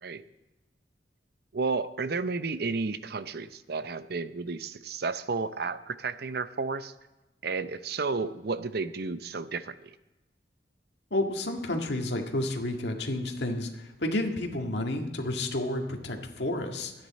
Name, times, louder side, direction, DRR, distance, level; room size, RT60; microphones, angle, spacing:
voice 1, 1.5-6.9 7.4-10.0, right 4 dB, 60° right, 12 dB, 0.7 m, -32 dB
voice 2, 11.1-16.9, left 1 dB, 70° left, 2 dB, 1.9 m, -31 dB
23.5 x 9.9 x 4.2 m, 1.1 s
head